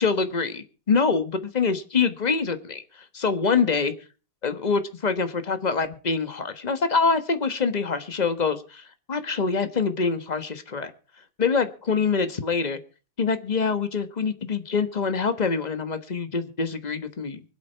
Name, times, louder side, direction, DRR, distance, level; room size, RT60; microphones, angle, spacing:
voice 1, 0.0-3.9 4.4-10.9 11.4-12.8 13.2-17.4, left 5 dB, 25° left, 10 dB, 1.1 m, -25 dB
24.5 x 8.3 x 4.5 m, 0.36 s
omnidirectional pair, 2.1 m